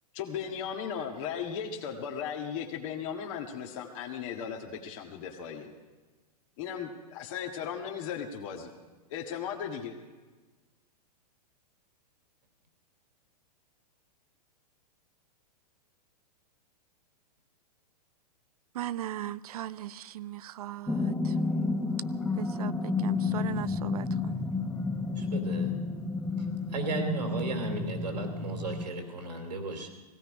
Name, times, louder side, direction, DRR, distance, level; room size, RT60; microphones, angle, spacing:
voice 1, 0.1-5.7 6.6-8.7 9.1-10.0, left 7 dB, 50° left, 1 dB, 1.8 m, -36 dB
voice 2, 18.7-21.3 22.4-24.4, right 13 dB, 65° right, 18 dB, 0.5 m, -38 dB
sound 1, 20.9-28.9, left 3 dB, 5° left, 0.9 m, -31 dB
voice 3, 25.2-25.7 26.7-29.9, right 2 dB, 80° right, 5 dB, 2.9 m, -35 dB
18.0 x 16.5 x 4.9 m, 1.3 s
hypercardioid pair, 115°, 21 cm